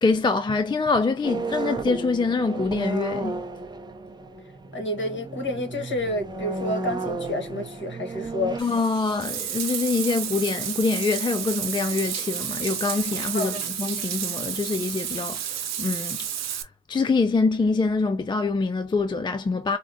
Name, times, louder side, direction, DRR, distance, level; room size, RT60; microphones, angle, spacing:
voice 1, 0.0-3.4 8.6-16.2 16.5-16.6 16.9-19.8, left 4 dB, 15° left, 0.3 m, -25 dB
sound 1, 1.2-8.6, right 3 dB, 15° right, 0.6 m, -33 dB
voice 2, 4.7-8.6 13.3-13.6, left 1 dB, 40° left, 1.4 m, -29 dB
Bathtub (filling or washing), 8.6-16.6, right 9 dB, 60° right, 0.8 m, -31 dB
4.6 x 2.1 x 2.7 m
cardioid pair, 90°, 30 cm